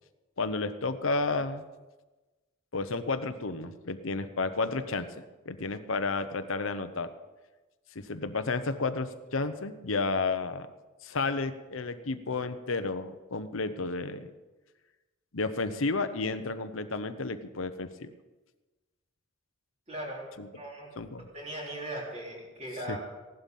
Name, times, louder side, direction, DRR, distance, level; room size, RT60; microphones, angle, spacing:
voice 1, 0.4-1.6 2.7-7.1 7.9-10.7 11.0-14.3 15.3-18.1 20.4-20.5 21.0-21.2 22.9-23.0, left 3 dB, 85° left, 10 dB, 0.9 m, -32 dB
voice 2, 19.9-20.2 20.5-20.9 21.2-23.0, right 1 dB, 30° right, -3 dB, 4.0 m, -38 dB
16.0 x 11.5 x 5.5 m, 1.2 s
head